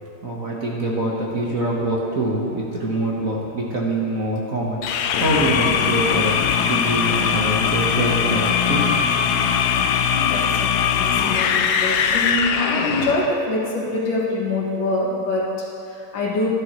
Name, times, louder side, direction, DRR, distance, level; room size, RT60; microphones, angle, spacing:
voice 1, 0.2-8.9, right 1 dB, 45° right, -4 dB, 1.5 m, -24 dB
sound 1, 4.8-13.3, left 7 dB, 80° left, 0.8 m, -21 dB
voice 2, 10.1-16.5, left 2 dB, 60° left, -3 dB, 2.2 m, -25 dB
13.0 x 11.5 x 3.1 m, 2.8 s
omnidirectional pair, 2.3 m